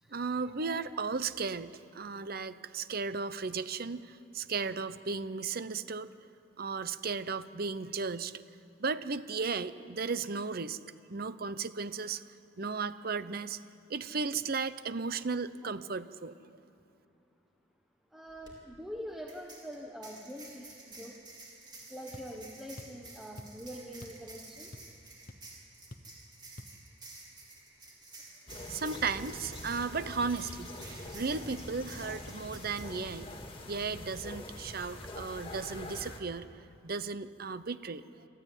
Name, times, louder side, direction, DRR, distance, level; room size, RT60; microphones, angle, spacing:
voice 1, 0.1-6.1 6.6-8.3 8.8-10.8 11.1-12.2 12.6-13.6 13.9-16.4 28.7-33.3 33.7-36.5 36.8-38.0, right 4 dB, 50° right, 14 dB, 0.7 m, -35 dB
voice 2, 18.1-21.2 21.9-24.7 34.8-35.5, equal, ahead, 0 dB, 1.3 m, -45 dB
sound 1, 18.3-18.5 19.3-32.9, right 2 dB, 25° right, 4.0 m, -51 dB
sound 2, 22.1-22.3 22.8-23.0 23.4-23.6 24.0-24.3 24.5-25.0 25.3-25.4 25.9-26.1 26.6-26.8, left 1 dB, 50° left, 1.1 m, -48 dB
sound 3, 28.5-36.2, left 1 dB, 30° left, 2.3 m, -44 dB
26.0 x 14.0 x 9.1 m, 2.8 s
head